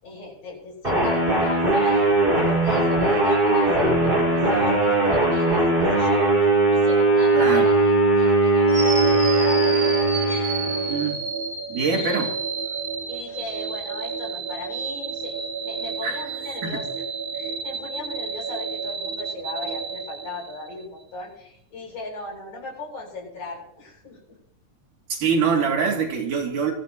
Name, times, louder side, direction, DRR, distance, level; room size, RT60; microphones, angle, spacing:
voice 1, 0.0-2.1 2.4-6.3 6.7-9.0 9.3-9.8 10.2-10.8 11.9-12.3 13.1-15.4 15.6-17.0 17.3-24.4, left 3 dB, 70° left, -2 dB, 9.6 m, -37 dB
sound 1, 0.8-11.1, right 2 dB, 15° right, 5.0 m, -19 dB
voice 2, 7.3-7.7 10.9-11.2 11.7-12.4 16.0-16.2 16.6-16.8 25.1-26.7, right 5 dB, 90° right, 0 dB, 4.4 m, -24 dB
sound 2, 8.7-20.8, right 5 dB, 40° right, 2.6 m, -30 dB
24.0 x 14.5 x 3.1 m, 0.75 s
omnidirectional pair, 3.6 m